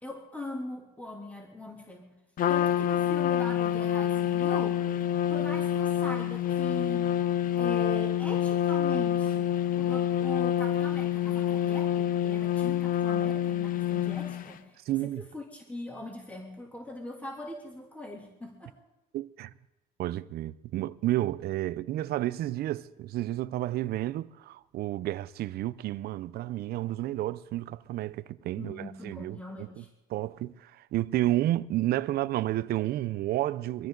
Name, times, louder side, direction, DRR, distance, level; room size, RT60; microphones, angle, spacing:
voice 1, 0.0-2.1 2.5-4.8 5.3-7.1 7.5-9.5 9.8-18.7 28.6-29.9, left 1 dB, 10° left, 3.0 m, -41 dB
Trumpet, 2.4-14.5, left 11 dB, 55° left, 0.7 m, -27 dB
voice 2, 14.9-15.2 19.1-19.5 20.0-29.8 30.1-33.9, right 15 dB, 70° right, 0.6 m, -31 dB
23.5 x 14.5 x 3.9 m
cardioid pair, 110°, 17 cm